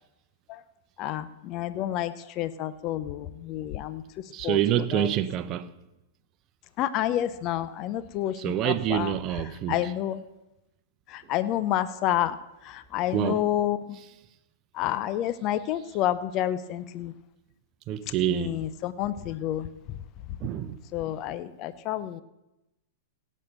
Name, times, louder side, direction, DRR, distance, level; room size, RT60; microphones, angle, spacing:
voice 1, 1.0-4.0 4.4-4.6 4.9-5.1 6.8-9.1 9.7-10.2 11.1-12.4 12.6-14.0 14.7-17.1 18.3-19.7 20.9-22.2, left 12 dB, 40° left, 0.6 m, -29 dB
voice 2, 4.3-5.7 8.3-9.9 13.1-13.4 17.9-18.7 19.2-19.3 20.4-20.8, right 11 dB, 35° right, 0.8 m, -27 dB
17.0 x 6.4 x 6.8 m
hypercardioid pair, 105°, 0 cm